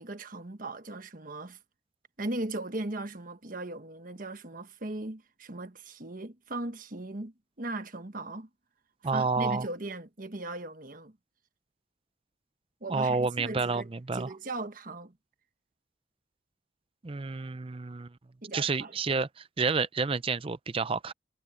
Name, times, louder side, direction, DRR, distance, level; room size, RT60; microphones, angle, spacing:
voice 1, 0.0-1.6 2.2-8.5 9.1-11.2 12.8-13.9 14.1-15.1 18.4-19.0, right 2 dB, 45° right, 1.3 m, -38 dB
voice 2, 9.0-9.7 12.9-14.3 17.0-18.1 18.5-21.1, right 4 dB, 30° right, 0.5 m, -29 dB
head